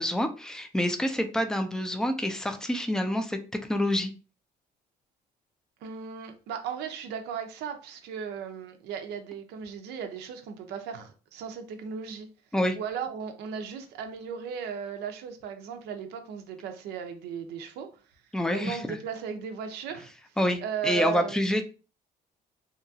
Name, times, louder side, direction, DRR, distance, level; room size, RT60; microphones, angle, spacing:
voice 1, 0.0-3.4 3.7-4.1 12.5-12.8 18.3-19.0 20.4-21.6, left 1 dB, 5° left, 0.4 m, -27 dB
voice 2, 5.8-12.3 12.7-17.9 18.5-20.1 20.6-21.6, right 7 dB, 80° right, 0.5 m, -36 dB
2.8 x 2.3 x 2.6 m
cardioid pair, 110°, 17 cm